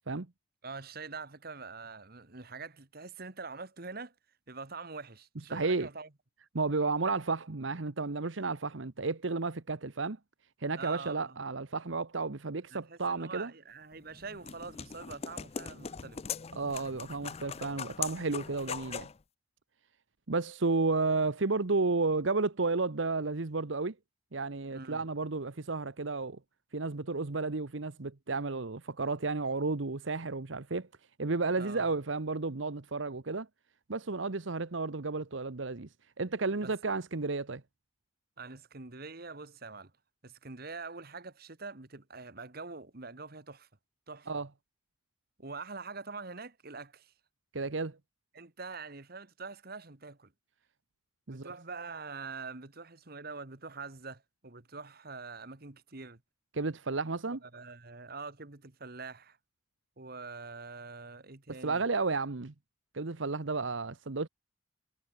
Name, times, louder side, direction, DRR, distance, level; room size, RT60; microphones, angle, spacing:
voice 1, 0.6-4.1 4.5-6.1 10.8-11.5 12.7-16.2 24.7-25.0 31.5-31.8 36.6-36.7 38.4-39.9 40.2-43.7 44.1-44.4 45.4-47.1 48.3-50.3 51.3-56.2 57.4-59.4 60.0-61.8, right 4 dB, 50° right, 1.8 m, -44 dB
voice 2, 5.5-5.9 6.5-10.2 10.6-13.5 16.5-19.1 20.3-23.9 24.3-26.4 26.7-30.9 31.2-33.5 33.9-35.9 36.2-37.6 44.3-44.5 47.5-48.0 51.3-51.5 56.5-57.4 61.6-62.5 62.9-64.3, right 3 dB, 75° right, 1.1 m, -32 dB
sound 1, 13.9-19.2, left 7 dB, 30° left, 0.5 m, -41 dB
head